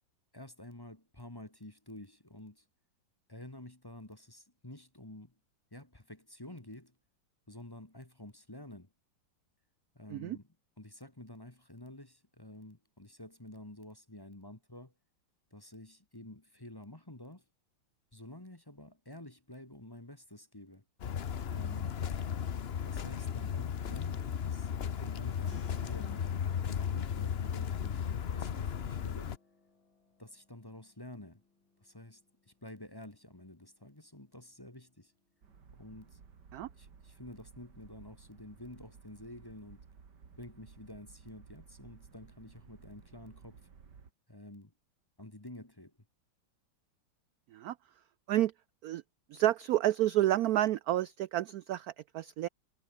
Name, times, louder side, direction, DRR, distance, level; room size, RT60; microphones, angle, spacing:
voice 1, 0.3-2.6 3.3-5.3 5.7-6.9 7.5-8.9 9.9-10.5 10.8-14.9 15.5-17.4 18.1-20.8 21.5-22.0 22.8-24.7 25.0-26.3 26.6-29.3 30.2-31.4 31.8-35.1 35.7-36.2 36.7-39.8 40.4-43.7 44.3-44.7 45.2-45.9, left 1 dB, 10° left, 1.6 m, -50 dB
sound 1, 21.0-29.4, left 8 dB, 50° left, 0.8 m, -35 dB
Keyboard (musical), 25.5-36.1, left 3 dB, 80° left, 5.3 m, -62 dB
sound 2, 35.4-44.1, right 6 dB, 60° right, 2.8 m, -57 dB
voice 2, 49.3-52.5, right 14 dB, 75° right, 0.8 m, -30 dB
omnidirectional pair, 2.1 m